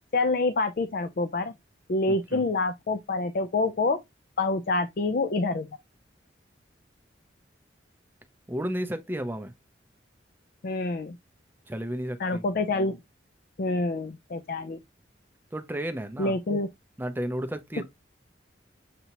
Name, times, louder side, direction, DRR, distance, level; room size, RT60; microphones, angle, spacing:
voice 1, 0.1-1.6 1.9-4.0 4.4-5.7 10.6-11.2 12.2-13.0 13.6-14.8 16.2-16.7 17.8-17.9, left 3 dB, 50° left, 0.4 m, -27 dB
voice 2, 2.1-2.4 8.5-9.5 11.7-12.4 15.5-16.4 17.0-17.8, right 1 dB, 10° right, 0.5 m, -33 dB
6.7 x 2.8 x 2.9 m
head